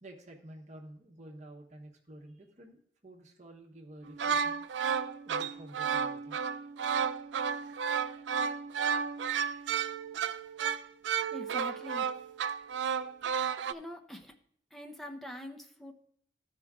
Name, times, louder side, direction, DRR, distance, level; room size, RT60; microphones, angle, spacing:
voice 1, 0.0-4.6 5.2-6.4, right 1 dB, 40° right, 1 dB, 1.1 m, -51 dB
sound 1, 4.0-13.7, right 6 dB, 85° right, 0.4 m, -32 dB
voice 2, 11.2-12.1 13.3-13.4 13.7-14.4 14.7-15.9, equal, ahead, 4 dB, 0.7 m, -44 dB
13.5 x 4.6 x 3.6 m, 0.64 s
head